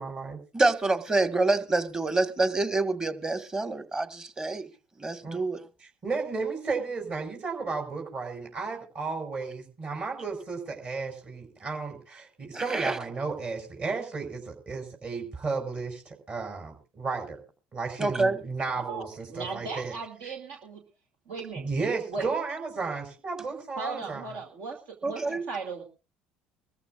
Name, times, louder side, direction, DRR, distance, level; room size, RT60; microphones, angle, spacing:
voice 1, 0.0-0.4 5.2-5.4 5.8-17.4 17.7-19.9 20.2-20.3 21.5-24.3, right 4 dB, 40° right, 5.4 m, -33 dB
voice 2, 0.5-4.7 5.0-5.6 12.5-13.0 18.0-18.4 25.0-25.4, right 3 dB, 20° right, 1.6 m, -27 dB
voice 3, 18.8-20.8 21.3-21.7 22.1-22.3 23.8-25.8, right 4 dB, 70° right, 2.3 m, -37 dB
24.0 x 14.0 x 2.5 m
hypercardioid pair, 70°, 4 cm